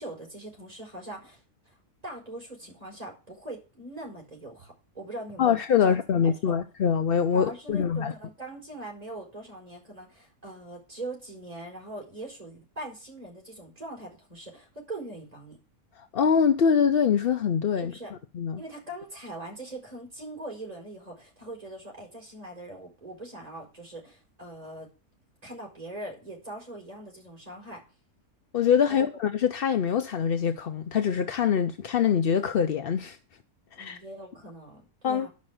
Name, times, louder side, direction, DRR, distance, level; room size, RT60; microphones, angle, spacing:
voice 1, 0.0-1.8 2.0-6.0 6.2-6.6 7.3-15.6 17.8-18.1 18.6-24.9 25.4-27.8 28.9-29.1 33.8-35.3, right 1 dB, 25° right, 5.5 m, -41 dB
voice 2, 5.4-8.1 16.1-17.9 18.3-18.6 28.5-33.2 33.7-34.0 35.0-35.3, left 7 dB, 55° left, 0.7 m, -24 dB
10.5 x 6.1 x 7.9 m
omnidirectional pair, 1.6 m